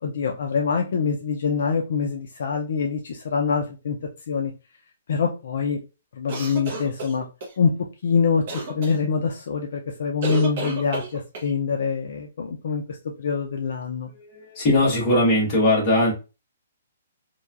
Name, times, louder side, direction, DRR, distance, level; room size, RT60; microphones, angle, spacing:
voice 1, 0.0-4.0 4.3-4.5 5.1-5.8 6.1-7.3 7.6-7.7 8.0-12.8 13.2-14.1, left 5 dB, 50° left, 2 dB, 0.3 m, -25 dB
sound 1, 6.3-7.5 8.5-8.9 10.2-11.5, right 3 dB, 35° right, 0.6 m, -31 dB
voice 2, 14.1-16.1, left 1 dB, 15° left, -5 dB, 0.9 m, -20 dB
2.8 x 2.2 x 2.3 m, 0.29 s
hypercardioid pair, 180°, 0 cm